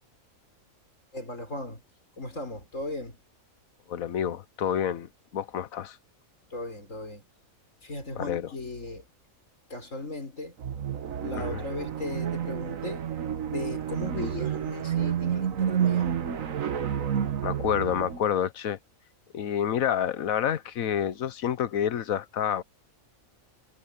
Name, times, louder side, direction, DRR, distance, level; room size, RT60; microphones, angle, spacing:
voice 1, 1.1-1.8 2.2-3.2 6.5-7.3 7.8-9.1 9.7-10.6 11.2-13.0 13.5-16.2, left 2 dB, 65° left, 6.4 m, -37 dB
voice 2, 3.9-6.0 8.2-8.5 11.4-11.6 17.4-18.8 19.3-22.6, left 9 dB, 80° left, 1.3 m, -28 dB
sound 1, 10.6-18.3, right 9 dB, 70° right, 1.5 m, -30 dB
omnidirectional pair, 1.4 m